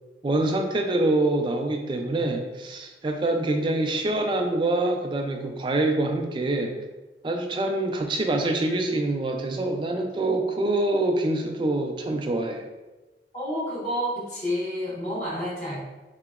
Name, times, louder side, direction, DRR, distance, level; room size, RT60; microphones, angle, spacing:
voice 1, 0.2-6.7 7.2-12.6, right 2 dB, 25° right, 4 dB, 0.3 m, -25 dB
voice 2, 13.3-15.8, equal, 40° left, -7 dB, 1.1 m, -29 dB
4.3 x 2.8 x 2.4 m, 1.1 s
head